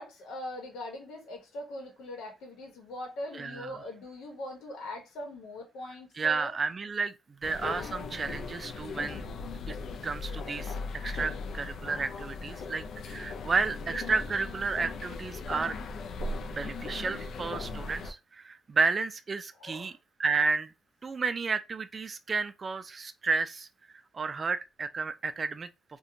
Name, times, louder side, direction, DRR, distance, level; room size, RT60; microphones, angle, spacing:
voice 1, 0.0-6.5 19.6-19.9, left 1 dB, 85° left, 0.9 m, -41 dB
voice 2, 3.3-3.7 6.2-9.2 9.7-9.8 10.0-15.8 16.5-19.9 20.2-20.7 21.0-23.7 24.1-25.7, right 4 dB, 35° right, 0.3 m, -32 dB
sound 1, 7.4-18.1, left 3 dB, 70° left, 0.4 m, -38 dB
2.5 x 2.2 x 2.7 m
cardioid pair, 90°, 0 cm